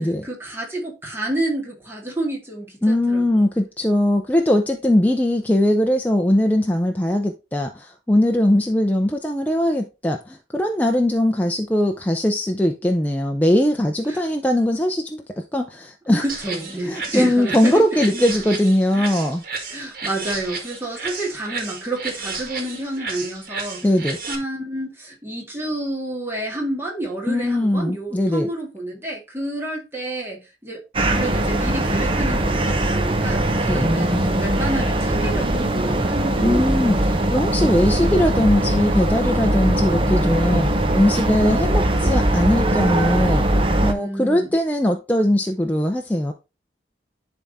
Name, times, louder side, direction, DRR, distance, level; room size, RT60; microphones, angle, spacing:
voice 1, 0.2-3.4 14.1-14.2 16.2-17.8 18.9-19.1 19.7-23.9 24.3-33.4 33.9-36.8 43.8-44.5, right 1 dB, 15° right, 2.1 m, -29 dB
voice 2, 2.8-15.2 15.5-16.2 16.9-19.4 23.8-24.2 27.3-28.5 33.7-33.9 36.4-43.5 43.8-46.3, left 1 dB, 10° left, 0.6 m, -20 dB
sound 1, 16.3-24.3, right 4 dB, 55° right, 2.1 m, -32 dB
sound 2, 30.9-43.9, right 1 dB, 30° right, 0.9 m, -20 dB
10.5 x 3.6 x 4.1 m
head